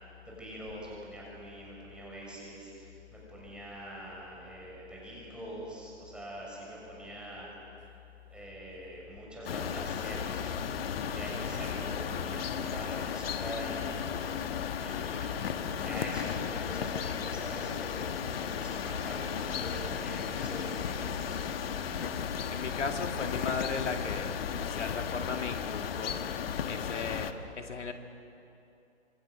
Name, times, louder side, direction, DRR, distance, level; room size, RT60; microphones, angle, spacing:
voice 1, 0.2-7.5 8.3-10.6 11.1-14.4 14.8-18.0 18.4-21.6 27.0-27.3, right 1 dB, 5° right, -4 dB, 6.6 m, -44 dB
sound 1, 9.4-27.3, left 7 dB, 55° left, 1.4 m, -34 dB
sound 2, 17.7-22.9, right 1 dB, 15° left, 6.3 m, -54 dB
voice 2, 22.5-26.3 26.6-27.9, left 4 dB, 80° left, 5 dB, 2.6 m, -37 dB
27.0 x 24.0 x 6.4 m, 2.7 s
hypercardioid pair, 135°, 35 cm